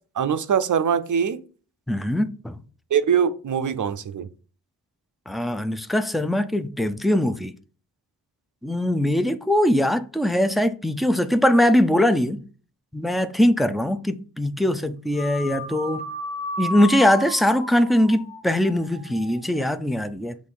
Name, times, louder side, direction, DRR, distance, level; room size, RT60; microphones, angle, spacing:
voice 1, 0.2-1.4 2.9-4.3, right 7 dB, 50° right, 0.5 m, -22 dB
voice 2, 1.9-2.6 5.3-7.5 8.6-12.4 12.9-16.0 16.6-20.4, left 1 dB, ahead, 0.3 m, -21 dB
sound 1, 15.1-19.7, left 1 dB, 70° left, 1.6 m, -34 dB
6.4 x 3.2 x 5.4 m
wide cardioid pair, 155°, 39 cm